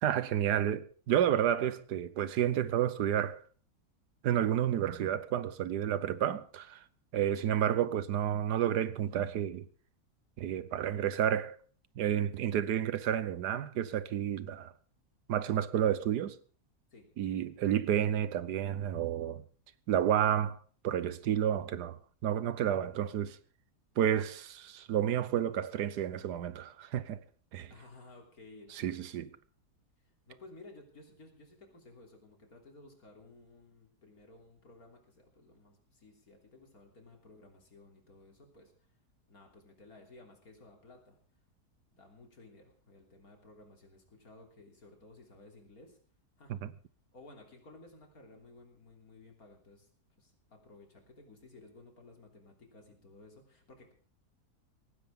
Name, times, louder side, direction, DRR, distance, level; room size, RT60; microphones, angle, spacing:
voice 1, 0.0-3.4 4.2-6.8 7.1-9.7 10.4-11.6 12.0-14.7 15.3-16.4 17.2-19.4 19.9-20.6 20.8-23.4 24.0-27.2 27.5-27.7 28.7-29.3 46.6-46.7, right 10 dB, 90° right, 1.5 m, -30 dB
voice 2, 27.7-29.3 30.3-38.9 39.3-41.2 41.9-46.0 46.4-46.6 47.1-49.9 50.2-53.9, left 2 dB, 60° left, 3.7 m, -56 dB
18.0 x 16.5 x 3.7 m
omnidirectional pair, 1.7 m